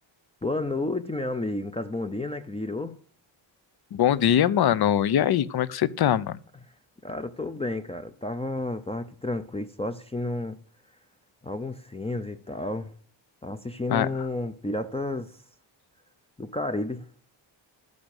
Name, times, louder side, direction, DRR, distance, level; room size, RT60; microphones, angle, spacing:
voice 1, 0.4-3.0 7.0-10.6 11.4-12.9 13.4-15.4 16.4-17.1, left 2 dB, 15° left, 0.6 m, -31 dB
voice 2, 3.9-6.4 13.9-14.1, left 10 dB, 55° left, 0.7 m, -22 dB
12.0 x 8.6 x 6.5 m
wide cardioid pair, 165°, 46 cm